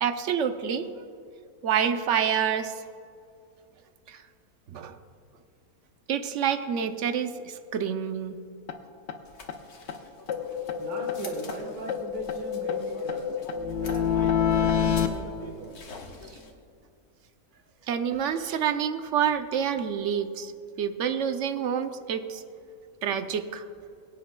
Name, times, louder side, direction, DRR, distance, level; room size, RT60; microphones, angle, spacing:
voice 1, 0.0-0.9 1.6-2.7 4.1-4.2 4.7-5.0 6.1-8.4 17.9-20.5 20.8-22.4 23.0-23.6, right 8 dB, 60° right, 9 dB, 0.9 m, -27 dB
sound 1, 8.7-8.8 9.1-9.2 9.5-9.6 9.9-10.0 10.3-11.6 11.9-15.1, left 8 dB, 55° left, 0.9 m, -27 dB
sound 2, 9.2-16.5, left 4 dB, 90° left, 1.8 m, -48 dB
voice 2, 10.8-13.3 13.6-15.8, right 3 dB, 80° right, 0 dB, 1.8 m, -39 dB
22.5 x 9.3 x 2.2 m, 2.5 s
omnidirectional pair, 1.6 m